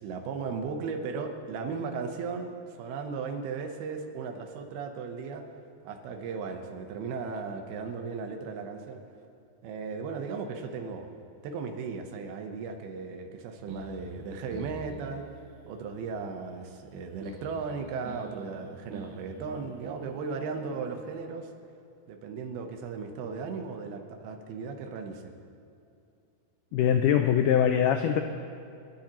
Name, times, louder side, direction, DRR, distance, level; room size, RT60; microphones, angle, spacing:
voice 1, 0.0-5.4 5.8-9.0 9.6-11.1 11.4-15.3 15.7-21.5 22.1-25.3, right 5 dB, 85° right, 5 dB, 3.0 m, -36 dB
sound 1, 13.7-21.2, right 3 dB, 60° right, 2.2 m, -49 dB
voice 2, 26.7-28.2, left 9 dB, 85° left, 7 dB, 1.8 m, -22 dB
30.0 x 11.5 x 3.0 m, 2.5 s
omnidirectional pair, 4.3 m